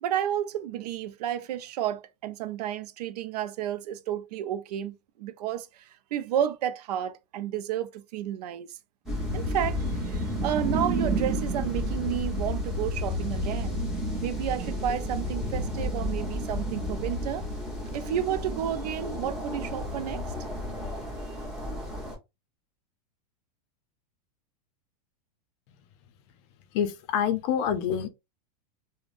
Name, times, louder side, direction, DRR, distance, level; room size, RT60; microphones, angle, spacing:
voice 1, 0.0-5.7 6.1-8.7 9.3-13.8 14.2-17.5 17.9-20.2, right 10 dB, 80° right, 0.4 m, -31 dB
sound 1, 9.1-22.2, equal, ahead, 1.0 m, -31 dB
voice 2, 26.7-28.1, left 8 dB, 45° left, 0.5 m, -26 dB
3.3 x 2.1 x 2.5 m
supercardioid pair, 145°, 20 cm